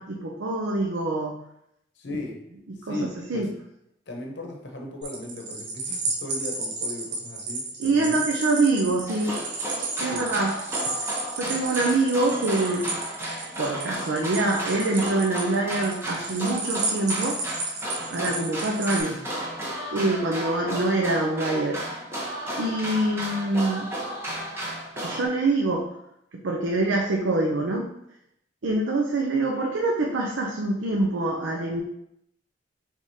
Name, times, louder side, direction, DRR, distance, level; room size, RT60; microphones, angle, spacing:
voice 1, 0.0-1.4 2.1-2.2 2.9-3.0 3.3-3.5 7.8-9.4 10.0-10.6 11.0-12.9 13.6-17.5 18.1-19.2 19.9-21.8 22.6-23.9 25.0-25.9 26.4-27.9 28.6-31.8, right 2 dB, 80° right, 0 dB, 0.5 m, -25 dB
voice 2, 2.0-2.4 2.8-3.5 4.1-8.2 10.0-10.2, left 1 dB, 65° left, 2 dB, 0.8 m, -37 dB
sound 1, 5.0-19.0, right 3 dB, 60° right, 0.9 m, -33 dB
sound 2, 9.1-25.3, right 1 dB, 15° right, 0.8 m, -34 dB
4.9 x 3.4 x 2.7 m, 0.77 s
head